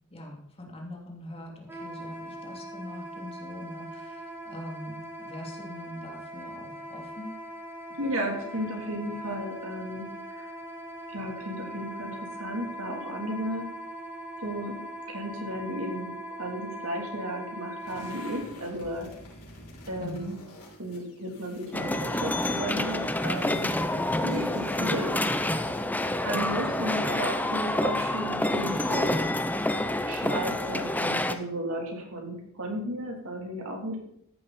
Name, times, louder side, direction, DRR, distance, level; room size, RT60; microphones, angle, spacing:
voice 1, 0.1-7.4 20.0-20.3 26.4-27.0, left 1 dB, 25° left, 0 dB, 2.9 m, -42 dB
Wind instrument woodwind instrument, 1.7-18.4, right 1 dB, 10° right, 1.9 m, -41 dB
voice 2, 8.0-10.1 10.4-10.5 11.1-13.7 14.4-14.8 15.1-16.1 16.4-19.1 19.9-20.4 20.8-23.7 24.2-25.1 26.2-29.1 30.1-34.0, right 1 dB, 70° right, 0 dB, 3.4 m, -34 dB
sound 1, 17.8-26.9, left 1 dB, 80° left, 4.5 m, -48 dB
sound 2, 21.7-31.3, left 1 dB, 10° left, 0.7 m, -28 dB
14.0 x 11.0 x 4.3 m, 0.68 s
head